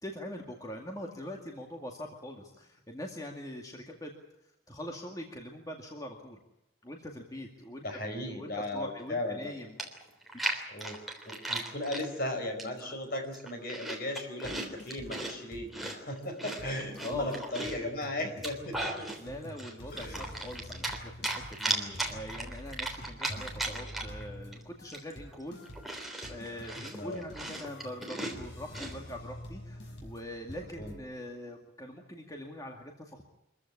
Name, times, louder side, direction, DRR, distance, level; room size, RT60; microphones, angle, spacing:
voice 1, 0.0-4.1 4.4-6.4 6.8-7.8 8.3-9.8 17.0-17.7 19.2-25.6 26.3-33.2, left 1 dB, 20° left, 1 dB, 2.2 m, -43 dB
voice 2, 7.8-9.6 10.7-19.1 19.9-20.3 21.6-22.0 26.9-27.2 30.8-31.0, left 1 dB, 50° left, 5 dB, 4.9 m, -37 dB
Chewing mastication, 9.4-9.5 9.8-12.1 12.6-12.9 13.3-15.3 15.7-17.8 18.3-19.2 19.6-21.0 21.2-24.2 24.5-24.6 24.9-28.9, right 2 dB, ahead, 3.4 m, -36 dB
sound 1, 14.4-15.2 15.5-15.9 16.2-16.3 16.6-31.0, equal, 70° left, 5.7 m, -47 dB
25.0 x 14.5 x 9.9 m, 0.85 s
head